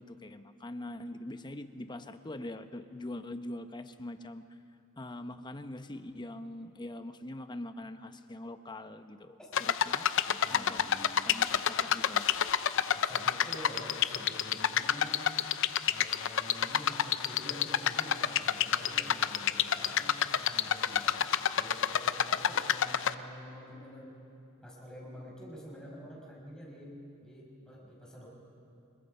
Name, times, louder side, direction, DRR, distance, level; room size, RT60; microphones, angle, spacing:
voice 1, 0.0-4.4 5.0-10.1 10.5-12.3, left 1 dB, 20° left, 9 dB, 0.8 m, -43 dB
sound 1, 9.5-23.1, left 9 dB, 65° left, 0.6 m, -29 dB
voice 2, 10.2-11.1 12.9-15.3 15.9-21.2 21.6-24.1 24.6-28.3, equal, 5° left, -5 dB, 5.8 m, -47 dB
26.5 x 21.0 x 5.5 m, 2.7 s
head